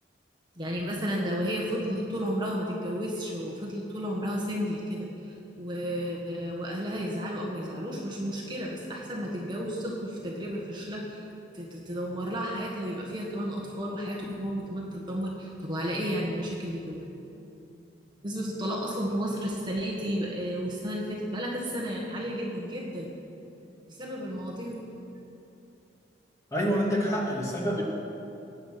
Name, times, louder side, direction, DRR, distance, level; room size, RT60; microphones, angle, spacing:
voice 1, 0.6-11.3 11.5-17.1 18.2-23.1 23.9-24.8, equal, 25° right, -2 dB, 1.7 m, -32 dB
voice 2, 26.5-27.8, equal, 15° left, -3 dB, 2.4 m, -27 dB
22.0 x 9.1 x 6.0 m, 2.8 s
head